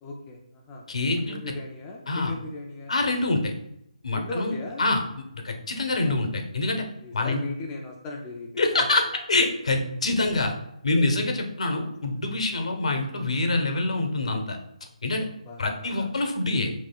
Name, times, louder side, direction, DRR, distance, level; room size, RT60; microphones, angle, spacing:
voice 1, 0.0-0.8 1.3-2.9 4.1-4.8 6.0-6.2 7.0-8.5 15.5-16.1, left 2 dB, 10° left, -1 dB, 0.4 m, -37 dB
voice 2, 0.9-1.5 2.1-2.3 2.9-3.5 4.0-5.0 5.4-6.9 7.1-7.4 8.6-10.5 10.8-14.6 15.0-15.3 15.6-16.8, left 2 dB, 60° left, 4 dB, 1.0 m, -25 dB
7.6 x 3.0 x 2.3 m, 0.82 s
hypercardioid pair, 165°, 4 cm